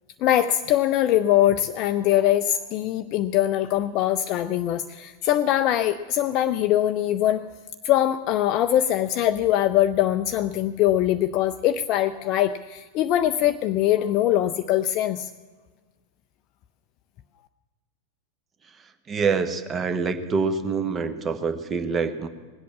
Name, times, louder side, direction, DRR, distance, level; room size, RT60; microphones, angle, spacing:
voice 1, 0.2-7.5 7.8-15.3, left 12 dB, 40° left, 9 dB, 0.5 m, -22 dB
voice 2, 19.1-22.3, right 5 dB, 25° right, 10 dB, 1.1 m, -25 dB
20.0 x 8.4 x 7.3 m, 1.4 s
figure-of-eight pair, 90°, 0 cm